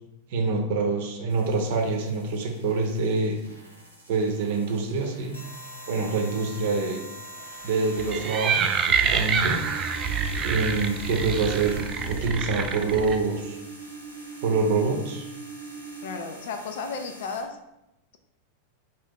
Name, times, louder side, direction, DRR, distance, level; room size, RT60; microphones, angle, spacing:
voice 1, 0.3-3.4 4.1-5.3 5.9-7.0 7.6-9.6 10.4-13.6 14.4-15.2, right 3 dB, 50° right, 2 dB, 0.7 m, -26 dB
sound 1, 1.3-17.4, equal, 90° left, 1.1 m, -44 dB
sound 2, 8.0-13.2, right 6 dB, 30° right, 0.3 m, -27 dB
sound 3, 9.5-16.2, right 5 dB, 5° left, 0.7 m, -41 dB
voice 2, 16.0-17.6, left 4 dB, 55° left, 7 dB, 0.4 m, -34 dB
4.1 x 2.6 x 3.6 m, 0.89 s
figure-of-eight pair, 90°, 0 cm